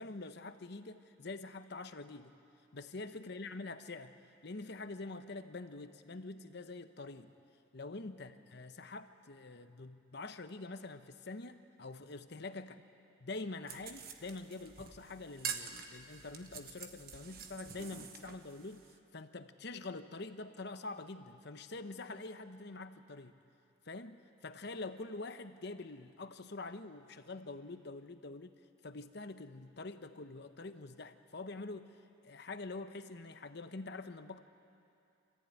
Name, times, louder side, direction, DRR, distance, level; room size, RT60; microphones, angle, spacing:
voice 1, 0.0-2.3 2.7-4.1 4.4-7.3 7.7-12.8 13.2-18.8 19.1-23.3 23.9-28.6 28.8-31.9 32.2-34.4, left 3 dB, 60° left, 9 dB, 1.0 m, -45 dB
sound 1, 13.7-19.0, right 6 dB, 50° right, 1.3 m, -46 dB
26.5 x 14.5 x 9.4 m, 2.6 s
head